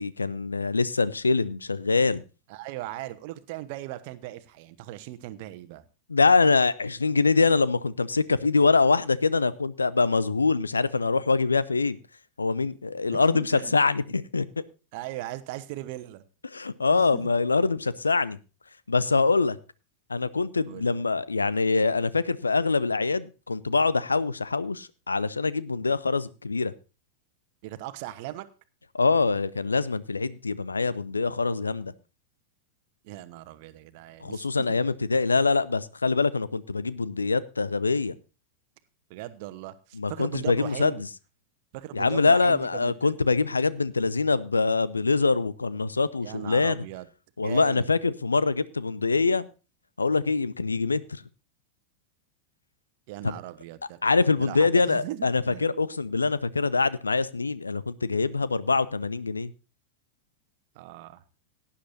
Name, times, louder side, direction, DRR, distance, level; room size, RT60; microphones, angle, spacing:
voice 1, 0.0-2.2 6.1-12.0 12.4-14.5 16.5-18.4 18.9-19.6 20.1-26.7 28.9-31.9 34.2-38.2 39.9-40.9 41.9-46.8 47.4-49.5 50.0-51.2 53.2-53.3 54.0-59.5, left 4 dB, 75° left, 19 dB, 0.6 m, -24 dB
voice 2, 2.5-5.8 13.1-13.8 14.9-16.2 16.9-17.3 20.7-21.0 27.6-28.5 33.0-34.8 39.1-41.0 41.7-43.1 46.2-47.1 47.4-47.8 53.1-54.0 54.4-55.7 60.7-61.2, right 15 dB, 50° right, 13 dB, 1.1 m, -38 dB
18.0 x 10.0 x 2.6 m, 0.32 s
figure-of-eight pair, 90°, 0 cm